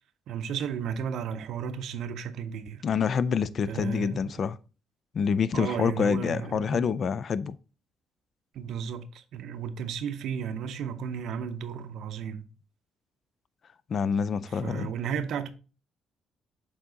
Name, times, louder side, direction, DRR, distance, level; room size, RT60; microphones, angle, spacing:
voice 1, 0.3-2.8 3.7-4.3 5.5-7.0 8.5-12.4 14.5-15.5, right 7 dB, 80° right, 0.7 m, -34 dB
voice 2, 2.8-4.6 5.1-7.5 13.9-14.9, left 6 dB, 55° left, 0.4 m, -27 dB
7.1 x 3.8 x 3.8 m
cardioid pair, 90°, 0 cm